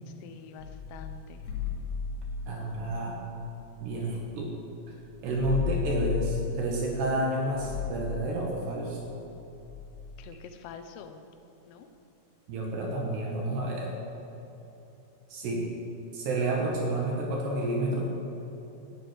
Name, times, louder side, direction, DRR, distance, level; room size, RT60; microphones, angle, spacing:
voice 1, 0.1-1.5 10.2-11.3 11.7-11.9, left 6 dB, 90° left, 7 dB, 3.6 m, -46 dB
sound 1, 0.6-4.5 4.7-4.8 5.1-10.2, left 8 dB, 70° left, 4.7 m, -35 dB
voice 2, 2.5-3.2 3.8-4.5 5.2-9.0 12.5-13.9 15.3-15.7 16.1-18.2, right 2 dB, 65° right, -1 dB, 3.6 m, -30 dB
13.0 x 10.5 x 9.5 m, 3.0 s
omnidirectional pair, 5.7 m